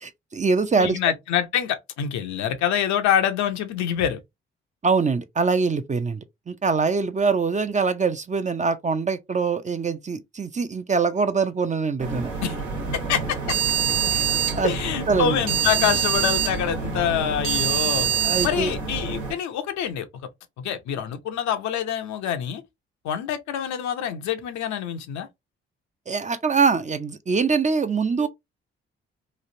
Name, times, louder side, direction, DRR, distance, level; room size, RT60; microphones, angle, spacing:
voice 1, 0.0-1.0 4.8-12.3 14.1-14.2 14.5-14.7 15.1-15.4 18.2-18.7 26.1-28.3, right 4 dB, 25° right, 0.5 m, -23 dB
voice 2, 0.8-4.2 12.4-12.6 12.9-13.6 14.6-18.1 18.4-20.1 20.6-22.6 23.0-25.3, left 9 dB, 65° left, 0.7 m, -26 dB
sound 1, 12.0-19.3, right 7 dB, 80° right, 1.3 m, -25 dB
3.1 x 2.4 x 2.6 m
hypercardioid pair, 45°, 30 cm